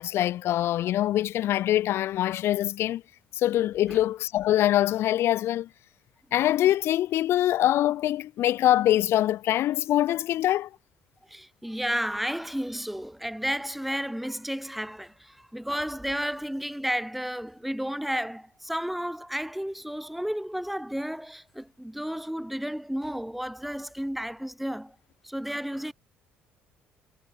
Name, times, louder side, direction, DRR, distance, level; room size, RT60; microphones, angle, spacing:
voice 1, 0.0-3.0 3.4-5.7 6.3-10.7, left 13 dB, 55° left, 0.7 m, -24 dB
voice 2, 11.3-25.0 25.2-25.9, equal, ahead, 3.7 m, -32 dB
figure-of-eight pair, 50°, 5 cm